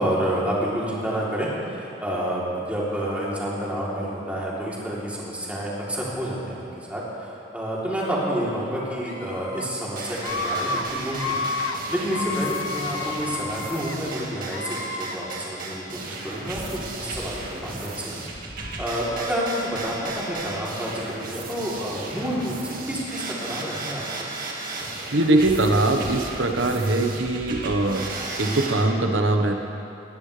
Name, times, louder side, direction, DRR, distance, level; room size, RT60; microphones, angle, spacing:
voice 1, 0.0-11.5 11.9-16.6 17.0-18.1 18.8-22.5 22.9-24.3, equal, 10° right, -7 dB, 3.4 m, -29 dB
Screaming, 9.1-9.6 10.2-10.8 11.1-11.8 12.1-14.0 14.4-15.2, left 3 dB, 75° left, 1.1 m, -30 dB
sound 1, 10.0-28.8, right 2 dB, 50° right, 2.0 m, -35 dB
voice 2, 25.1-28.1 28.4-29.5, right 2 dB, 80° right, 4 dB, 1.3 m, -21 dB
20.5 x 17.0 x 3.4 m, 2.7 s
head